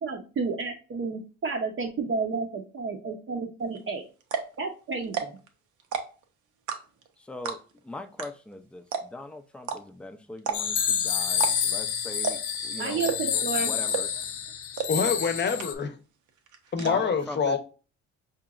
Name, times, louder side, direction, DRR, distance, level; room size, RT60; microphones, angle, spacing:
voice 1, 0.0-4.1 4.6-5.4 12.8-13.7, right 4 dB, 45° right, 0.6 m, -31 dB
sound 1, 3.8-3.9 4.2-4.6 5.0-5.5 5.8-6.2 6.7-7.1 7.4-7.8 8.2-8.3 8.5-8.6 8.9-9.3 9.6-9.8 10.4-10.8 11.3-11.8 12.2-12.6 13.0-13.4 13.9-14.2 14.8-14.9 15.2-15.3 15.6-16.0 16.3-16.9, right 6 dB, 80° right, 0.7 m, -30 dB
voice 2, 7.2-14.1 16.8-17.6, left 1 dB, 5° left, 0.4 m, -41 dB
sound 2, 10.5-15.7, left 8 dB, 85° left, 0.7 m, -28 dB
voice 3, 14.9-15.9 16.7-17.6, left 5 dB, 35° left, 0.7 m, -26 dB
4.9 x 2.9 x 2.4 m
cardioid pair, 90°, 30 cm